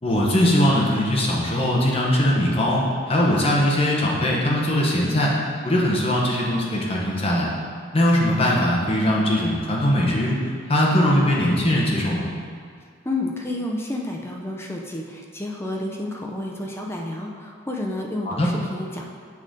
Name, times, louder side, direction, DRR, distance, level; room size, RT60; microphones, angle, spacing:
voice 1, 0.0-5.4 5.6-7.5 7.9-10.4 10.7-12.3 18.3-18.5, left 1 dB, 25° left, -4 dB, 1.0 m, -20 dB
voice 2, 13.0-19.1, left 1 dB, 10° left, 0 dB, 0.5 m, -30 dB
7.6 x 5.0 x 3.8 m, 2.1 s
head